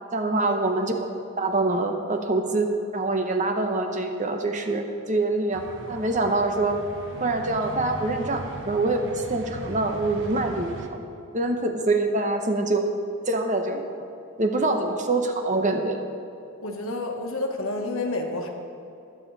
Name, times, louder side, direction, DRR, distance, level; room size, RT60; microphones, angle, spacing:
voice 1, 0.1-1.0 1.4-5.6 5.9-6.8 7.2-11.0 11.3-12.8 13.3-13.9 14.4-16.0, right 2 dB, 35° right, 5 dB, 0.9 m, -25 dB
sound 1, 5.5-10.9, right 2 dB, 60° right, 1.0 m, -39 dB
voice 2, 16.6-18.5, left 2 dB, 65° left, 3 dB, 1.5 m, -29 dB
21.0 x 7.3 x 4.1 m, 2.7 s
head